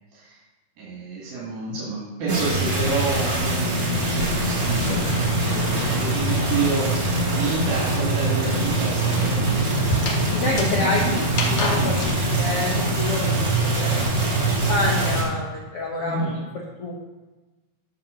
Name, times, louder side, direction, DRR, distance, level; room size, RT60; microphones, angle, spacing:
voice 1, 0.8-6.9 7.3-9.6 11.7-12.0 16.0-16.4, right 4 dB, 75° right, -6 dB, 3.8 m, -29 dB
sound 1, 2.3-6.0 6.3-12.2, left 1 dB, 55° left, 1.8 m, -33 dB
sound 2, 2.3-15.2, right 2 dB, 40° right, 3.5 m, -23 dB
voice 2, 10.3-11.2 11.5-12.0 12.4-16.4 16.8-16.9, left 2 dB, 80° left, -3 dB, 1.2 m, -28 dB
12.0 x 4.3 x 6.2 m, 1.2 s
omnidirectional pair, 4.3 m